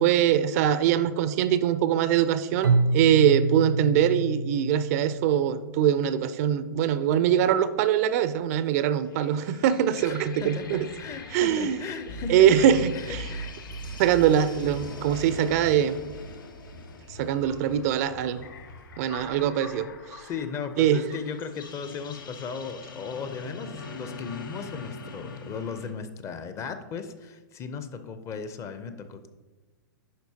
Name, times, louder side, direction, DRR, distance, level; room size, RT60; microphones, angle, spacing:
voice 1, 0.0-10.9 11.3-11.8 12.3-13.2 14.0-15.9 17.2-18.4 19.0-20.2 20.8-21.0, right 10 dB, 50° right, 13 dB, 0.4 m, -23 dB
Keyboard (musical), 2.6-5.6, right 3 dB, 85° right, 0.7 m, -26 dB
sound 1, 9.0-25.9, left 4 dB, 80° left, 0.8 m, -44 dB
voice 2, 10.0-13.5 20.2-29.3, left 6 dB, 25° left, 10 dB, 0.6 m, -37 dB
sound 2, 12.1-19.5, right 2 dB, 55° left, 1.4 m, -40 dB
10.5 x 4.3 x 2.8 m, 1.2 s
hypercardioid pair, 115°, 11 cm